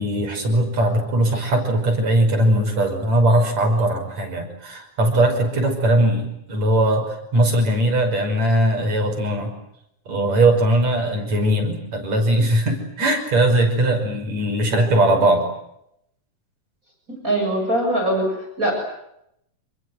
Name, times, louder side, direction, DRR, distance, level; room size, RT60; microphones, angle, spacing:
voice 1, 0.0-9.5 10.1-15.5, right 1 dB, 55° right, 3 dB, 7.0 m, -20 dB
voice 2, 17.2-18.7, right 1 dB, 25° right, 2 dB, 7.7 m, -22 dB
27.5 x 22.5 x 9.5 m, 0.78 s
omnidirectional pair, 3.7 m